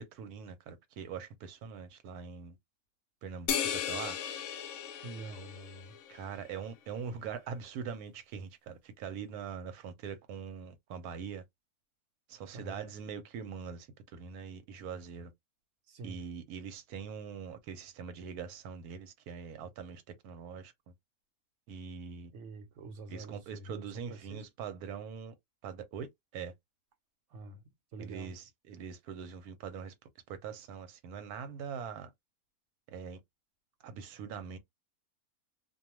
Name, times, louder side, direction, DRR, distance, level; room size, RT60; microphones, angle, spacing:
voice 1, 0.0-2.6 3.2-4.2 6.1-11.4 12.3-15.3 16.0-20.9 21.7-22.3 23.1-25.3 25.6-26.1 26.3-26.5 28.0-29.9 30.3-32.1 32.9-33.2 33.8-34.6, right 6 dB, 85° right, 1.1 m, -42 dB
sound 1, 3.5-6.2, left 8 dB, 65° left, 0.7 m, -36 dB
voice 2, 5.0-6.0 12.5-12.9 15.9-16.2 22.3-24.5 27.3-28.4, right 3 dB, 60° right, 1.0 m, -46 dB
2.5 x 2.2 x 2.9 m
omnidirectional pair, 1.6 m